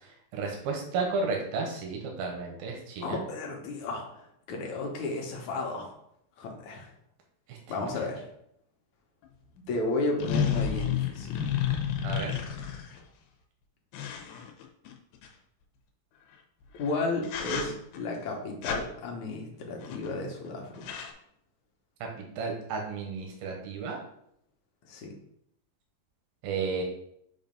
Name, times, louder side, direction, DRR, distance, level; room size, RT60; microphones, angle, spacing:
voice 1, 0.0-3.2 7.5-7.9 12.0-12.3 22.0-24.0 26.4-26.8, right 4 dB, 90° right, 1 dB, 2.7 m, -33 dB
voice 2, 3.0-5.9 6.4-6.9 7.7-8.3 9.6-11.4 16.8-20.9 24.9-25.2, left 2 dB, 65° left, 0 dB, 2.0 m, -33 dB
sound 1, 9.2-9.3 10.2-13.0 13.9-15.3 16.7-16.9 17.2-18.0 18.6-18.8 19.8-20.2 20.5-20.6 20.7-21.1, left 8 dB, 85° left, 2.6 m, -31 dB
7.3 x 2.6 x 5.2 m, 0.73 s
omnidirectional pair, 4.1 m